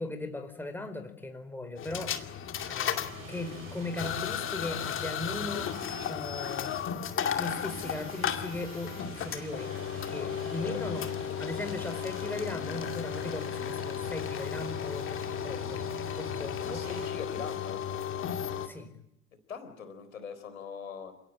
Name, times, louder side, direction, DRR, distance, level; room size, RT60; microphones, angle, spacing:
voice 1, 0.0-2.3 2.7-3.0 3.3-5.8 6.1-6.7 7.4-11.1 11.4-15.1 15.4-15.8 16.2-16.8 18.6-18.9, left 2 dB, 5° left, 6 dB, 4.5 m, -38 dB
sound 1, 1.8-18.7, left 8 dB, 30° left, 2.4 m, -34 dB
sound 2, 3.0-6.8 7.4-17.1, right 4 dB, 75° right, 7.1 m, -48 dB
voice 2, 10.6-11.0 16.7-17.8 19.5-21.1, left 6 dB, 75° left, 9 dB, 4.3 m, -42 dB
28.5 x 17.5 x 9.2 m, 0.80 s
figure-of-eight pair, 75°, 41 cm